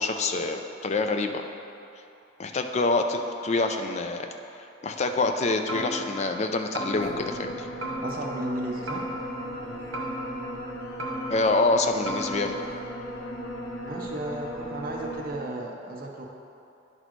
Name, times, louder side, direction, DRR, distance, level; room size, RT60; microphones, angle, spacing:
voice 1, 0.0-1.4 2.4-4.3 4.8-7.7 11.3-12.6, left 3 dB, 35° left, 6 dB, 0.4 m, -26 dB
sound 1, 5.7-6.4 6.8-7.5 7.8-8.6 8.9-9.6 9.9-10.7 11.0-11.7 12.1-12.5, right 1 dB, 80° right, 1.2 m, -35 dB
sound 2, 6.9-15.3, equal, 80° left, 1.1 m, -37 dB
voice 2, 8.0-9.1 13.9-16.2, right 1 dB, 45° right, 0 dB, 0.6 m, -34 dB
9.9 x 4.2 x 4.5 m, 2.7 s
head